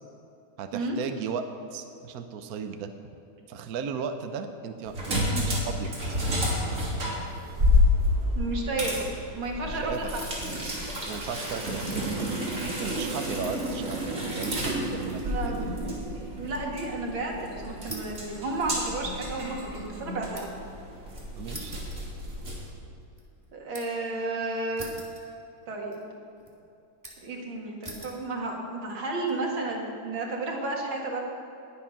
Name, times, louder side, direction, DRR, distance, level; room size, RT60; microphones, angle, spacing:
voice 1, 0.6-2.9 3.5-5.9 9.6-10.0 11.1-12.3 12.6-15.7 21.3-21.8, right 6 dB, 60° right, 7 dB, 1.1 m, -36 dB
sound 1, 4.9-22.7, left 1 dB, 40° right, 3.2 m, -30 dB
voice 2, 8.4-10.2 15.1-15.8 16.4-20.5 23.5-24.9 25.7-26.1 27.2-31.2, right 2 dB, 80° right, -1 dB, 2.8 m, -32 dB
sound 2, 14.4-14.8 15.2-16.7 17.0-17.1 17.9-20.7 21.5-22.6 23.0-24.1 24.8-25.7 25.9-26.5 27.0-27.4 27.8-28.2 28.9-29.3, right 1 dB, 10° right, 1.9 m, -44 dB
20.5 x 7.6 x 5.8 m, 2.8 s
omnidirectional pair, 2.1 m